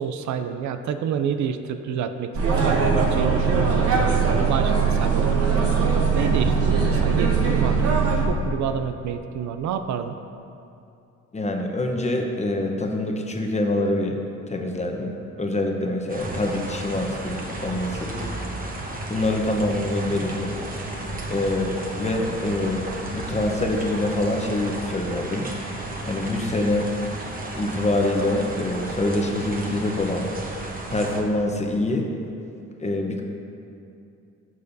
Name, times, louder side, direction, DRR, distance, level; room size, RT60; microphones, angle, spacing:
voice 1, 0.0-5.5 6.1-7.8 8.3-10.2, right 7 dB, 70° right, 8 dB, 0.5 m, -29 dB
sound 1, 2.3-8.3, right 5 dB, 50° right, 1.1 m, -20 dB
voice 2, 11.3-14.2 14.5-18.3 19.1-20.6 21.3-25.5 26.1-26.9 27.5-30.3 30.9-32.1 32.8-33.2, left 1 dB, 20° left, 2 dB, 0.9 m, -25 dB
sound 2, 16.1-31.2, right 1 dB, 30° right, 1.2 m, -33 dB
12.0 x 6.5 x 2.7 m, 2.6 s
cardioid pair, 90°, 30 cm